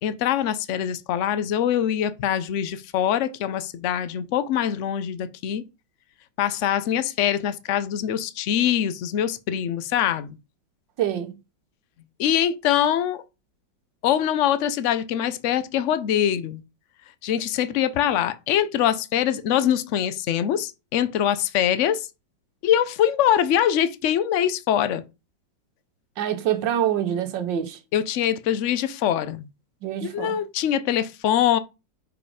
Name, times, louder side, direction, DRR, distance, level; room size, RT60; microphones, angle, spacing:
voice 1, 0.0-5.6 6.4-10.4 12.2-13.2 14.0-16.6 17.2-22.1 22.6-25.0 27.9-29.5 30.0-31.6, left 10 dB, 80° left, 0.6 m, -23 dB
voice 2, 11.0-11.3 26.2-27.8 29.8-30.4, right 10 dB, 75° right, 1.6 m, -25 dB
5.0 x 5.0 x 4.9 m
omnidirectional pair, 2.0 m